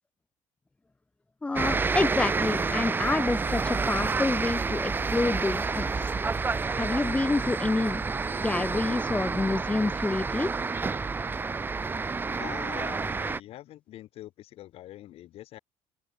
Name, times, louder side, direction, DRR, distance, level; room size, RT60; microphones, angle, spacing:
voice 1, 1.4-6.1 6.8-8.0 8.4-10.5, left 2 dB, 10° left, 1.4 m, -28 dB
sound 1, 1.6-13.4, right 4 dB, 15° right, 3.5 m, -29 dB
voice 2, 12.4-15.6, left 14 dB, 55° left, 7.5 m, -44 dB
open air
cardioid pair, 155°, 12 cm